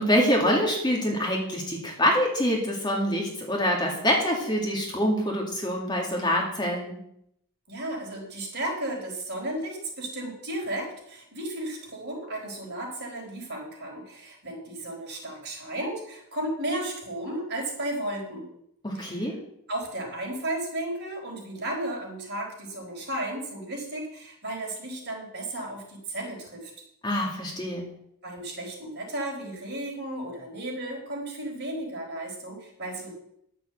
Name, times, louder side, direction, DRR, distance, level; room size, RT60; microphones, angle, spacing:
voice 1, 0.0-7.0 18.8-19.4 27.0-27.9, equal, 20° left, -1 dB, 2.2 m, -25 dB
voice 2, 7.7-18.5 18.9-19.3 19.7-26.7 28.2-33.1, right 1 dB, 50° right, -1 dB, 4.4 m, -34 dB
11.5 x 6.8 x 7.8 m, 0.74 s
head